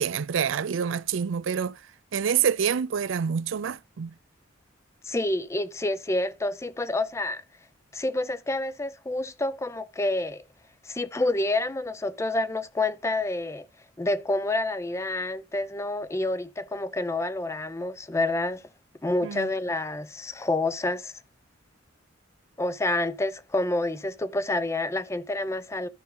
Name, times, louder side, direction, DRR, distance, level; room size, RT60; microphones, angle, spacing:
voice 1, 0.0-1.7 2.1-4.1 19.2-19.5, right 7 dB, 75° right, 0.4 m, -27 dB
voice 2, 5.0-7.4 7.9-10.4 10.8-13.7 14.0-18.6 19.0-21.2 22.6-25.9, left 2 dB, 15° left, 0.4 m, -28 dB
12.0 x 5.1 x 3.8 m
head